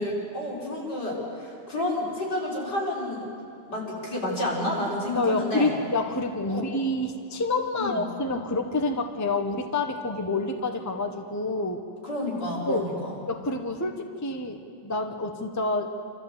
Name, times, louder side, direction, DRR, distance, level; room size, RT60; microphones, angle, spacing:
voice 1, 0.0-3.3 3.6-5.7 6.5-6.7 7.8-8.0 12.0-13.1, left 1 dB, 75° left, -5 dB, 5.8 m, -30 dB
voice 2, 5.1-11.8 12.7-12.9 13.3-16.0, left 2 dB, 10° left, 5 dB, 0.9 m, -28 dB
27.5 x 14.0 x 8.1 m, 2.5 s
omnidirectional pair, 1.8 m